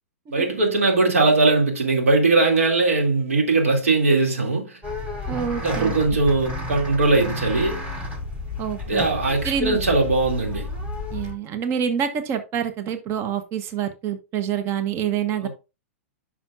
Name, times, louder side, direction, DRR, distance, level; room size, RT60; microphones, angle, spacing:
voice 1, 0.3-4.8 5.6-7.8 8.8-10.7 15.4-15.5, right 3 dB, 80° right, 2.5 m, -20 dB
sound 1, 4.8-11.3, left 2 dB, 20° right, 4.3 m, -31 dB
voice 2, 5.3-5.9 8.6-9.0 9.4-9.8 11.1-15.5, right 8 dB, 35° right, 1.0 m, -26 dB
9.8 x 5.9 x 2.5 m
hypercardioid pair, 105°, 7 cm